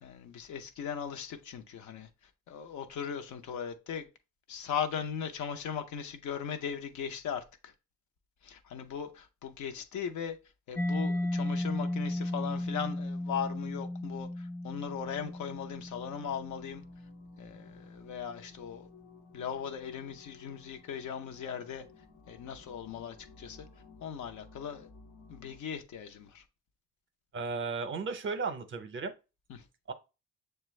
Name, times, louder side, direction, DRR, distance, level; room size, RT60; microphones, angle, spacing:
voice 1, 0.0-2.1 2.5-4.1 4.5-7.7 8.4-10.4 10.7-16.8 17.4-18.9 19.3-21.9 22.3-23.7 24.0-24.9 25.3-26.4 29.5-29.6, left 7 dB, 70° left, 0.7 m, -38 dB
Mallet percussion, 10.8-18.3, left 1 dB, 5° left, 0.4 m, -35 dB
sound 1, 16.5-25.6, left 5 dB, 90° left, 1.1 m, -57 dB
voice 2, 27.3-29.1 29.9-30.0, right 4 dB, 40° right, 0.6 m, -35 dB
6.6 x 2.2 x 3.1 m
cardioid pair, 90°, 30 cm